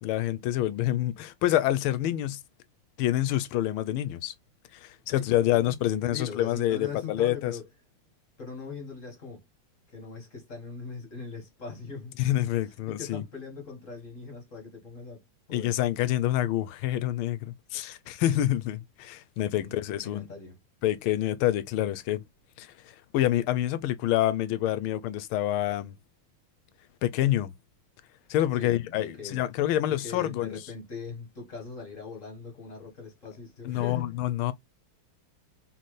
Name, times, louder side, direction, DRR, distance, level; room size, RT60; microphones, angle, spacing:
voice 1, 0.0-2.4 3.0-4.3 4.7-7.5 12.2-13.2 15.5-20.3 20.8-22.2 22.6-26.0 27.0-27.5 28.3-30.6 33.6-34.5, left 13 dB, 80° left, 1.4 m, -27 dB
voice 2, 5.1-7.6 8.4-9.4 9.9-12.1 12.7-15.8 19.6-20.6 28.6-29.4 29.9-34.1, left 4 dB, 40° left, 1.7 m, -41 dB
4.1 x 3.8 x 3.1 m
omnidirectional pair, 2.4 m